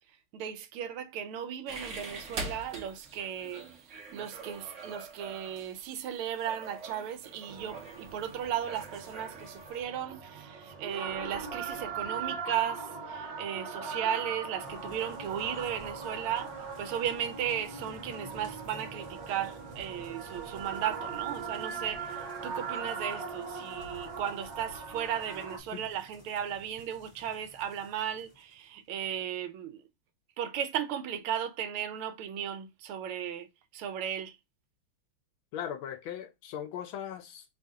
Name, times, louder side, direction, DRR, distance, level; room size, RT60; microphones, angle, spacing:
voice 1, 0.3-29.8 30.4-34.4, right 9 dB, 85° right, 1.4 m, -36 dB
sound 1, 1.7-9.8, right 3 dB, 50° right, 0.9 m, -44 dB
sound 2, 7.5-25.6, right 5 dB, 65° right, 1.4 m, -40 dB
sound 3, 14.6-28.7, left 2 dB, 25° left, 0.9 m, -54 dB
voice 2, 35.5-37.4, left 9 dB, 75° left, 1.3 m, -39 dB
3.5 x 2.7 x 3.5 m
omnidirectional pair, 2.3 m